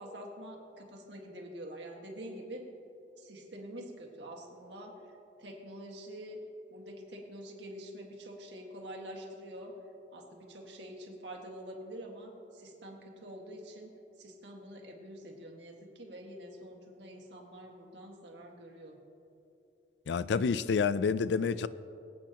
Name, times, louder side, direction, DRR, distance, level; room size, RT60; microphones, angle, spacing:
voice 1, 0.0-2.7 3.2-4.9 5.4-6.4 6.7-9.8 10.1-19.0, equal, 80° right, 1.8 m, -46 dB
voice 2, 20.1-21.7, left 5 dB, 75° left, 0.4 m, -28 dB
23.5 x 8.5 x 2.9 m
head